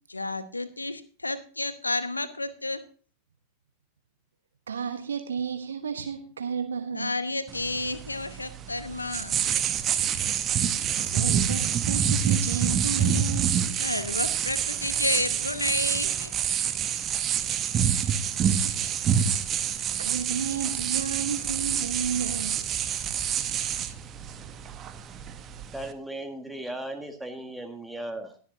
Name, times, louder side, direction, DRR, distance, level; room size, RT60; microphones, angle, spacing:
voice 1, 0.1-2.8 6.9-9.4 13.8-16.3 18.2-18.3, left 2 dB, 80° left, 13 dB, 0.9 m, -31 dB
voice 2, 4.7-7.2 11.0-13.8 18.3-18.9 20.0-22.6, right 7 dB, 70° right, 7 dB, 1.2 m, -33 dB
sound 1, 7.5-25.9, right 8 dB, 30° right, 0.8 m, -27 dB
voice 3, 25.7-28.4, right 1 dB, 5° right, 5 dB, 1.6 m, -36 dB
20.5 x 7.2 x 2.7 m, 0.40 s
figure-of-eight pair, 90°, 0 cm